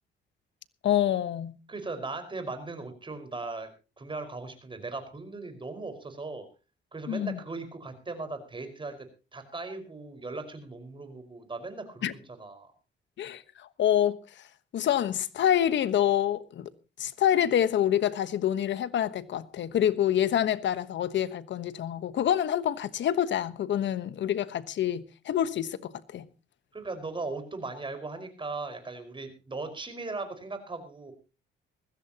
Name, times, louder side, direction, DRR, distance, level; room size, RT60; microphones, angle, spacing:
voice 1, 0.8-1.6 7.1-7.4 12.0-12.1 13.2-14.2 14.7-16.7 17.0-26.3, left 10 dB, 65° left, 1.2 m, -27 dB
voice 2, 1.7-3.7 4.0-6.5 6.9-9.0 9.3-12.7 26.7-31.1, right 3 dB, 25° right, 5.1 m, -38 dB
21.0 x 15.5 x 3.0 m
cardioid pair, 90°, 20 cm